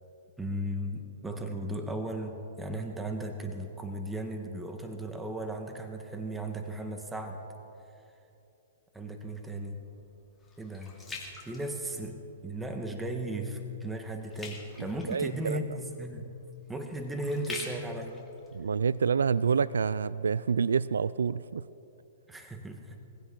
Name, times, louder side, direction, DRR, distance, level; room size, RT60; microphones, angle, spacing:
voice 1, 0.4-7.4 8.9-9.8 10.6-11.2 11.4-12.2 12.4-16.3 16.7-18.2 22.3-23.0, right 1 dB, 5° right, 4 dB, 1.3 m, -36 dB
sound 1, 9.2-12.4 12.9-13.2 13.5-19.5 20.0-20.1, left 3 dB, 10° left, 2.5 m, -46 dB
voice 2, 15.1-15.6 18.5-21.6, right 6 dB, 90° right, 18 dB, 0.3 m, -27 dB
21.5 x 16.0 x 3.8 m, 2.8 s
hypercardioid pair, 135°, 0 cm